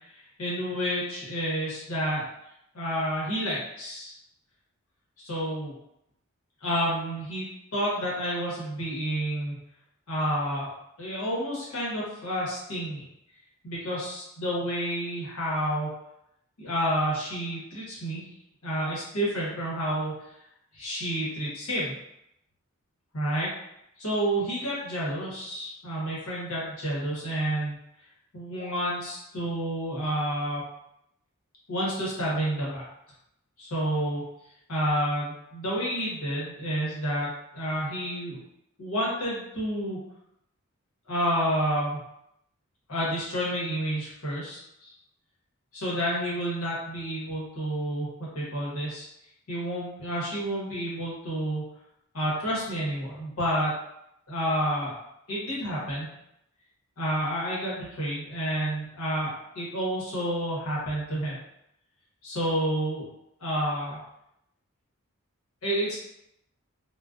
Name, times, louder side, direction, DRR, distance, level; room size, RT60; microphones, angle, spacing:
voice 1, 0.1-2.3 2.7-4.1 5.2-5.7 6.6-7.5 7.7-9.5 10.1-10.7 11.0-13.1 13.6-15.9 16.6-18.2 18.6-20.1 20.7-21.9 23.1-23.5 24.0-27.8 28.3-30.6 31.7-32.8 33.6-34.2 34.7-38.4 38.8-40.0 41.1-42.0 42.9-44.9 45.7-49.1 49.5-51.7 52.1-53.8 54.3-54.9 55.3-56.1 57.0-61.4 62.2-63.0 63.4-64.0 65.6-66.0, equal, 80° left, -6 dB, 1.0 m, -29 dB
2.3 x 2.2 x 2.4 m, 0.79 s
head